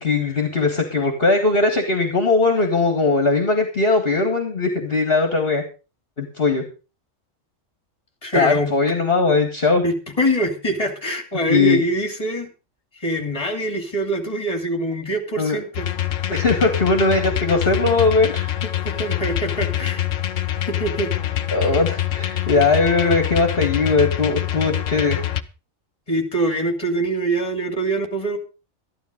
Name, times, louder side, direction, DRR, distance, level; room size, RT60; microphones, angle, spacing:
voice 1, 0.0-5.6 6.2-6.6 8.3-9.8 11.5-11.8 15.4-15.6 16.3-18.5 21.5-25.2, left 3 dB, 45° left, 4 dB, 2.0 m, -19 dB
voice 2, 8.2-8.7 9.8-12.5 13.0-15.9 18.8-20.0 20.7-21.1 26.1-28.4, right 1 dB, 25° left, 5 dB, 2.9 m, -24 dB
sound 1, 15.7-25.4, left 12 dB, 75° left, 1.2 m, -25 dB
13.5 x 11.5 x 5.1 m, 0.33 s
omnidirectional pair, 1.4 m